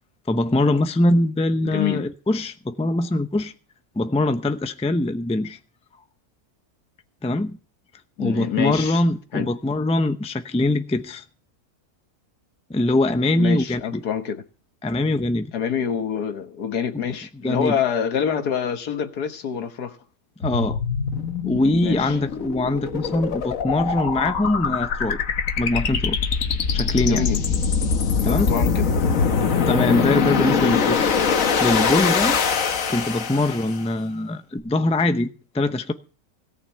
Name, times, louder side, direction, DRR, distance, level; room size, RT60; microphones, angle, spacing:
voice 1, 0.3-3.5 4.0-5.6 7.2-7.6 8.2-11.2 12.7-14.0 14.8-15.5 17.4-17.8 20.4-20.8 21.4-25.2 25.6-26.2 26.7-27.3 28.2-28.5 29.4-31.2 31.6-32.4 32.9-35.9, left 2 dB, 5° left, 0.5 m, -22 dB
voice 2, 1.7-2.0 8.2-9.0 9.3-9.5 13.4-14.4 15.5-20.0 21.8-22.2 27.1-27.4 28.2-28.9, left 8 dB, 80° left, 1.8 m, -26 dB
sound 1, 20.4-33.8, left 6 dB, 60° left, 1.5 m, -23 dB
17.5 x 6.2 x 8.8 m
omnidirectional pair, 1.6 m